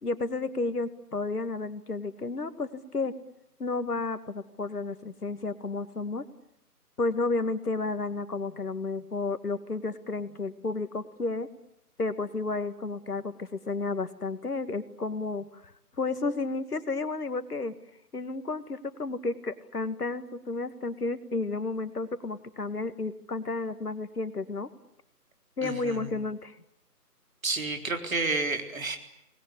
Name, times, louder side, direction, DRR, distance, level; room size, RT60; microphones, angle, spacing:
voice 1, 0.0-3.1 3.6-6.2 7.0-11.5 12.0-17.7 18.1-24.7 25.6-26.6, left 3 dB, 70° left, 11 dB, 2.2 m, -32 dB
voice 2, 25.6-26.0 27.4-29.0, right 3 dB, 55° right, 5 dB, 4.0 m, -30 dB
25.5 x 20.0 x 10.0 m, 0.77 s
figure-of-eight pair, 160°, 47 cm